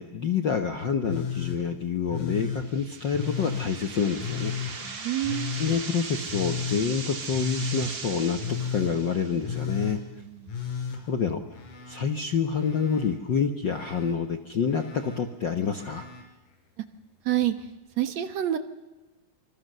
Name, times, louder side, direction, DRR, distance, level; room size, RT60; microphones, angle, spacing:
voice 1, 0.0-4.9 5.6-10.0 11.1-11.4 11.9-16.1, left 6 dB, 55° left, 7 dB, 1.3 m, -27 dB
Telephone, 1.0-1.6 2.1-2.6 3.1-3.7 4.2-4.7 5.2-5.8 6.3-6.8 7.3-7.9 8.4-8.9 9.4-10.0 10.5-12.0 12.3-13.1 13.6-14.1 14.7-15.2 15.7-16.2 17.4-17.5, left 7 dB, 85° left, 5.8 m, -33 dB
sound 1, 2.6-9.5, right 4 dB, 35° right, 2.8 m, -39 dB
voice 2, 4.8-5.6 10.0-10.6 17.3-17.6 18.0-18.6, right 13 dB, 60° right, 10 dB, 2.3 m, -28 dB
26.5 x 26.5 x 6.8 m, 1.1 s
omnidirectional pair, 3.8 m